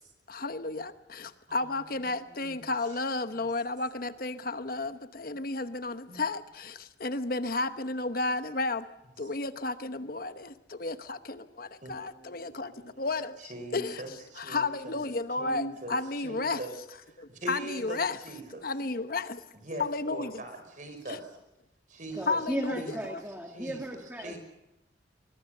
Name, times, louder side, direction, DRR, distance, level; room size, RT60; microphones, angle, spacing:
voice 1, 0.3-8.9 9.2-14.0 14.4-16.6 17.2-18.2 18.6-19.4 19.8-20.4 21.1-21.2 22.3-22.8, left 3 dB, 50° left, 11 dB, 1.0 m, -32 dB
voice 2, 2.3-2.7 6.1-6.2 11.8-13.1 13.4-15.0 15.4-16.7 17.1-18.7 19.6-21.4 21.9-22.4 22.7-23.0 23.5-23.8 24.2-24.4, right 2 dB, 40° right, 7 dB, 5.5 m, -42 dB
voice 3, 22.1-24.4, equal, 10° right, 3 dB, 1.8 m, -35 dB
24.0 x 22.0 x 6.7 m, 0.90 s
head